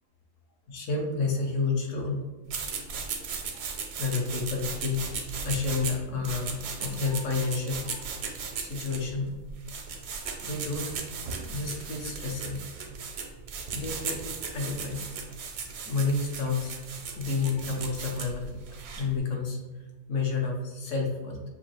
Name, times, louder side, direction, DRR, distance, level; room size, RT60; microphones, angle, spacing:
voice 1, 0.7-2.3 3.5-3.7 4.0-5.0 5.4-8.1 8.6-9.4 9.7-10.9 11.5-12.7 13.7-14.2 14.5-15.1 15.8-16.8 17.1-18.5 19.0-19.6 20.1-21.4, left 4 dB, 60° left, 1 dB, 0.9 m, -30 dB
sound 1, 2.5-19.2, right 5 dB, 80° right, 1.2 m, -37 dB
6.2 x 2.6 x 3.0 m, 1.2 s
omnidirectional pair, 1.7 m